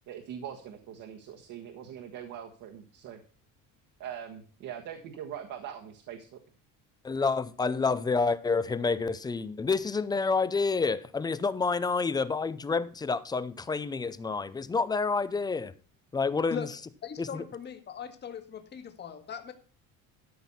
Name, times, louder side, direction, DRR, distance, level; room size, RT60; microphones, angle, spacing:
voice 1, 0.1-3.2 4.0-6.4, right 9 dB, 60° right, 1.5 m, -42 dB
voice 2, 7.0-15.7 16.1-16.7 17.2-17.4, left 4 dB, 10° left, 0.4 m, -28 dB
voice 3, 17.0-19.5, left 7 dB, 30° left, 1.6 m, -39 dB
13.0 x 6.1 x 5.5 m
cardioid pair, 165°, 34 cm